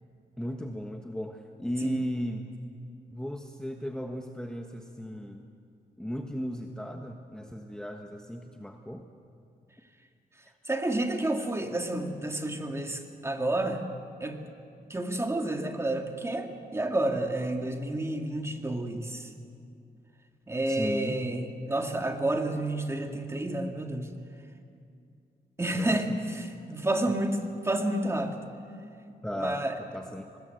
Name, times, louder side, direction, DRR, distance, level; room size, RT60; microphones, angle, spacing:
voice 1, 0.4-2.5 3.1-5.5 6.0-9.0 20.7-21.2 25.7-26.2 27.1-27.2 29.2-30.4, equal, 5° left, 4 dB, 1.3 m, -36 dB
voice 2, 10.7-13.9 14.2-14.4 14.9-19.3 20.5-24.1 25.6-27.4 27.6-28.3 29.4-29.8, right 1 dB, 15° right, 4 dB, 2.4 m, -30 dB
24.5 x 20.0 x 8.1 m, 2.4 s
cardioid pair, 95°, 15 cm